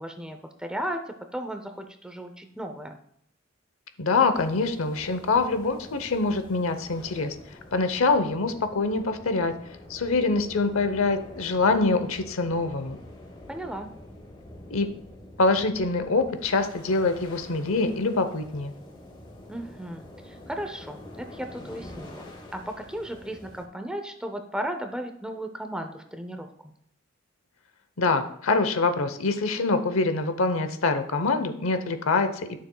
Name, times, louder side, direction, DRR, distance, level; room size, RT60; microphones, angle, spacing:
voice 1, 0.0-3.0 13.5-13.9 19.5-26.7, right 1 dB, 5° right, 6 dB, 0.6 m, -35 dB
voice 2, 4.0-7.3 7.7-9.5 9.9-13.0 14.7-14.9 15.4-18.7 28.0-32.6, left 3 dB, 85° left, 9 dB, 0.8 m, -25 dB
sound 1, 4.3-23.7, left 1 dB, 25° left, 1.2 m, -46 dB
12.0 x 6.7 x 2.3 m, 0.70 s
head